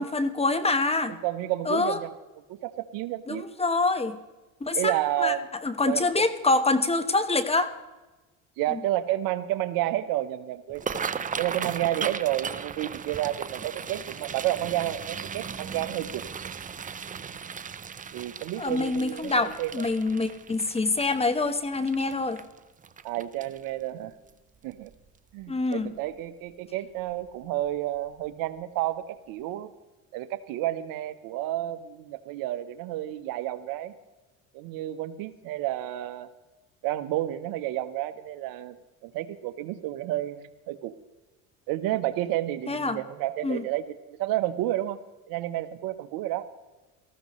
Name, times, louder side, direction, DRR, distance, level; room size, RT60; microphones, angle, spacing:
voice 1, 0.0-1.2 1.6-2.0 3.3-4.2 4.6-4.9 5.2-5.3 5.6-7.7 8.7-8.8 18.6-22.4 25.5-25.9 42.7-43.0 43.4-43.6, left 3 dB, 15° left, 10 dB, 1.2 m, -25 dB
voice 2, 1.2-2.1 2.5-3.4 4.7-5.5 5.8-6.1 8.6-10.8 11.4-16.2 18.1-19.9 23.0-24.1 24.6-24.9 25.3-29.7 30.1-33.9 34.5-36.3 36.8-38.7 39.0-40.9 41.7-43.9 44.2-45.0 45.3-46.4, right 14 dB, 65° right, 12 dB, 1.1 m, -30 dB
sound 1, 10.7-23.8 24.3-24.6 24.9-25.3 25.7-25.9 27.1-27.3 27.6-27.8 28.2-28.3, right 6 dB, 20° right, 0.7 m, -37 dB
19.0 x 14.5 x 3.1 m, 1.2 s
supercardioid pair, 90°, 36 cm